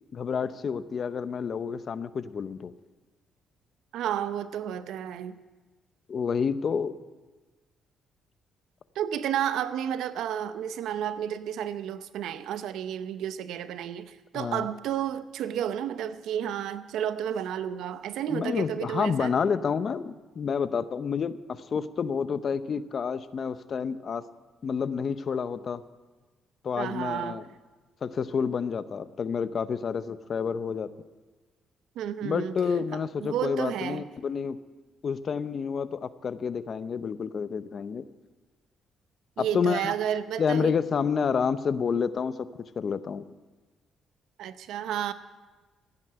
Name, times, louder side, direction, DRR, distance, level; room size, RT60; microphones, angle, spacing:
voice 1, 0.1-2.7 6.1-7.0 14.3-14.6 18.3-24.2 24.6-25.8 26.6-27.4 28.0-30.9 32.2-34.6 35.0-38.1 39.4-39.9 40.4-42.5 42.8-43.2, left 6 dB, 50° left, 0.7 m, -29 dB
voice 2, 3.9-5.3 8.9-19.3 26.8-27.5 32.0-32.6 32.9-34.0 39.4-40.7 44.4-45.1, right 10 dB, 85° right, 0.7 m, -31 dB
15.5 x 9.8 x 7.8 m
cardioid pair, 90°, 0 cm